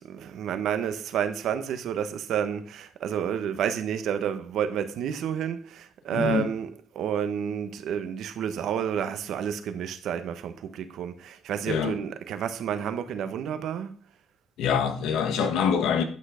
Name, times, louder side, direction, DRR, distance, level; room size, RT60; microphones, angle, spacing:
voice 1, 0.0-6.7 6.9-13.9, right 8 dB, 80° right, 1.1 m, -30 dB
voice 2, 6.1-6.5 11.7-12.0 14.6-16.0, left 7 dB, 85° left, 1.4 m, -25 dB
11.0 x 6.4 x 5.0 m
cardioid pair, 90°, 0 cm